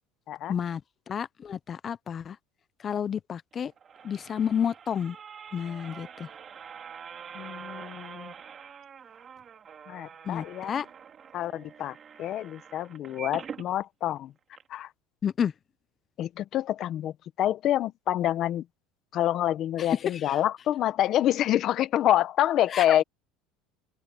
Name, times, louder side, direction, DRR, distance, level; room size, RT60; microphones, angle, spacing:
voice 1, 0.5-0.8 1.1-2.4 2.8-3.7 4.0-5.2 5.5-6.3 10.3-10.9 15.2-15.5 19.8-20.4 22.7-22.8, left 8 dB, 30° left, 0.7 m, -30 dB
sound 1, 3.5-13.7 14.2-14.3 14.5-14.6, right 7 dB, 30° right, 3.2 m, -45 dB
voice 2, 7.3-8.3 9.9-10.8 11.3-14.3 14.7-14.9 16.2-18.6 19.1-23.0, left 12 dB, 45° left, 1.1 m, -27 dB
supercardioid pair, 130°, 0 cm